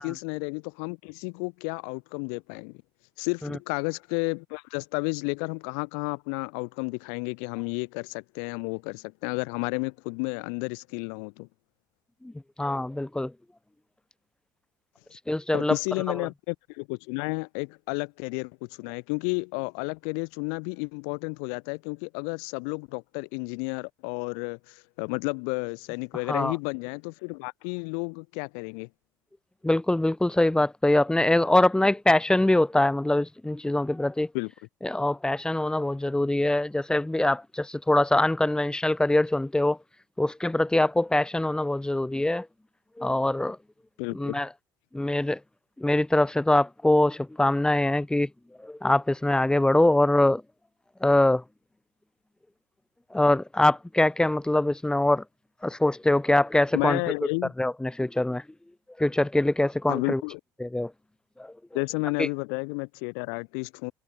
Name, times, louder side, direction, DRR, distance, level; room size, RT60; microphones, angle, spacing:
voice 1, 0.0-2.7 3.2-11.5 15.5-28.9 34.3-34.5 44.0-44.4 56.7-57.5 59.9-60.4 61.7-63.9, left 40 dB or more, 65° left, 7.3 m, -32 dB
voice 2, 12.6-13.3 15.1-15.8 26.3-26.5 29.6-34.3 34.8-39.8 40.2-42.5 43.0-43.6 44.1-44.5 44.9-45.4 45.8-48.3 48.6-50.4 51.0-51.4 53.1-55.2 55.6-57.0 57.6-58.4 59.0-60.2 60.6-60.9 61.4-61.5 62.2-62.3, left 1 dB, 5° left, 2.8 m, -23 dB
figure-of-eight pair, 55°, 11 cm